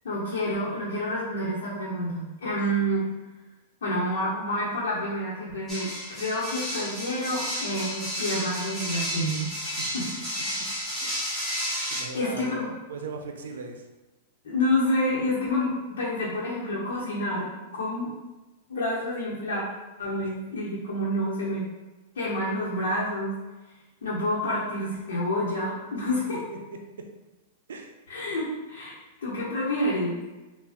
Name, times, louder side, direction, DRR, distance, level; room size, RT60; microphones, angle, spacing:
voice 1, 0.0-3.1 3.8-10.0 12.1-12.7 14.4-18.1 18.7-19.6 20.0-21.7 22.1-23.3 24.0-26.4 28.1-28.9 29.2-30.2, left 1 dB, 85° left, -8 dB, 1.1 m, -28 dB
sound 1, 5.7-12.0, equal, 5° left, 1.1 m, -32 dB
voice 2, 11.9-13.8 20.2-20.3 26.3-26.8 27.7-27.9, right 4 dB, 90° right, 4 dB, 0.5 m, -39 dB
3.5 x 2.4 x 3.5 m, 1.1 s
hypercardioid pair, 140°, 0 cm